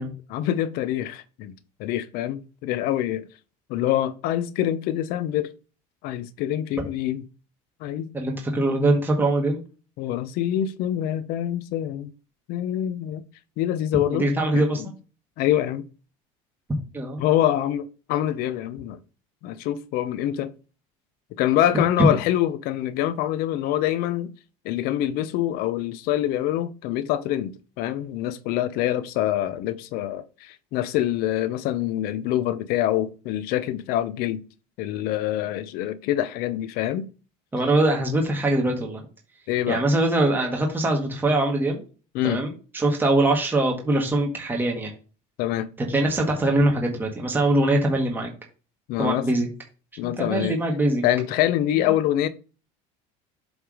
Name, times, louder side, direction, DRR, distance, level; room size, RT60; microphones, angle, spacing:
voice 1, 0.3-3.3 3.7-5.5 6.0-7.2 7.8-8.1 10.0-12.1 12.5-13.2 13.6-14.3 14.5-14.9 15.4-15.9 17.2-19.0 19.4-20.5 21.4-24.3 24.6-34.4 34.8-37.1 39.5-39.8 42.1-42.4 45.4-45.7 48.9-49.3 50.0-50.6 51.0-52.3, left 12 dB, 65° left, 0.9 m, -25 dB
voice 2, 8.1-9.6 14.1-14.8 16.9-17.2 22.0-22.1 37.5-39.0 39.7-41.8 42.2-44.9 45.9-48.3 49.0-49.5 50.0-51.0, right 2 dB, 10° right, 1.8 m, -22 dB
8.0 x 3.6 x 4.9 m
cardioid pair, 130°, 17 cm